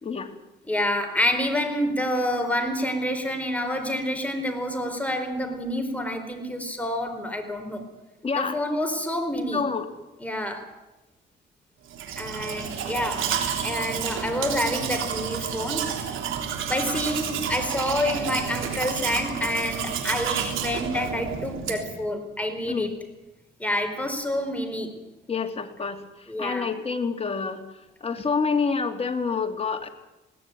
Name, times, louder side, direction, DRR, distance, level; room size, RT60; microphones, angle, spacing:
voice 1, 0.0-0.3 8.2-8.6 9.5-9.9 22.7-22.9 25.3-27.6 28.0-29.9, left 5 dB, 30° left, 5 dB, 2.7 m, -28 dB
voice 2, 0.7-7.8 8.4-9.6 10.2-10.7 12.2-15.9 16.7-22.9 23.6-24.9 26.3-26.7, left 1 dB, 5° left, 5 dB, 4.6 m, -28 dB
Domestic sounds home sounds, 11.9-22.0, right 7 dB, 80° right, 3.6 m, -30 dB
20.5 x 17.0 x 9.3 m, 1.0 s
cardioid pair, 90°, 20 cm